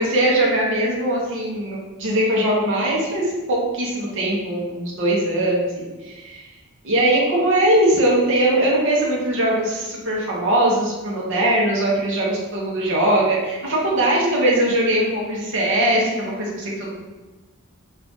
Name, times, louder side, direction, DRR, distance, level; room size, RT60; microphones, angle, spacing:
voice 1, 0.0-6.5 6.8-16.9, right 1 dB, 55° right, -4 dB, 0.7 m, -20 dB
3.8 x 2.4 x 3.4 m, 1.2 s
head